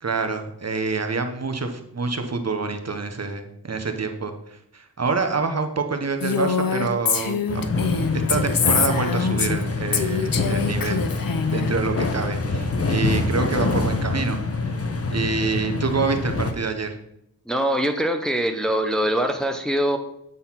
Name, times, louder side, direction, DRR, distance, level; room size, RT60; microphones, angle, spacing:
voice 1, 0.0-7.4 8.1-11.1 11.5-14.7 15.1-16.9, right 4 dB, 40° right, 6 dB, 1.0 m, -27 dB
Female speech woman speaking, 6.2-9.6 9.9-11.7, left 6 dB, 60° left, 0.9 m, -24 dB
sound 1, 7.5-16.5, left 3 dB, 35° left, 1.1 m, -25 dB
voice 2, 17.5-20.0, right 1 dB, ahead, 5 dB, 0.8 m, -23 dB
9.0 x 4.1 x 5.7 m, 0.78 s
cardioid pair, 70°, 39 cm